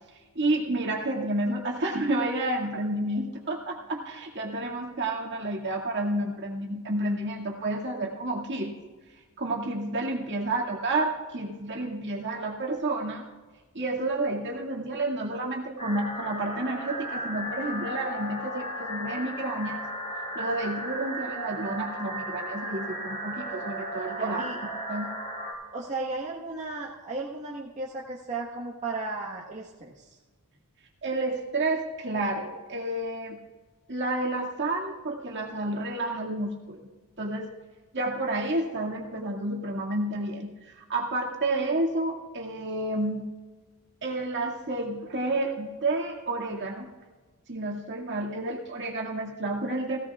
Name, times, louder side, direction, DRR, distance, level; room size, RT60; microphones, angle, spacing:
voice 1, 0.4-8.7 9.4-13.2 13.7-19.8 20.3-24.4 24.9-25.1 31.0-33.4 33.9-36.9 37.2-37.5 37.9-43.3 44.0-46.9 47.5-50.0, right 2 dB, 55° right, 0 dB, 2.1 m, -30 dB
sound 1, 15.8-25.5, equal, 35° left, 4.1 m, -35 dB
voice 2, 24.2-24.6 25.7-30.2, right 3 dB, 35° right, -4 dB, 1.4 m, -35 dB
17.5 x 16.5 x 2.4 m, 1.3 s
head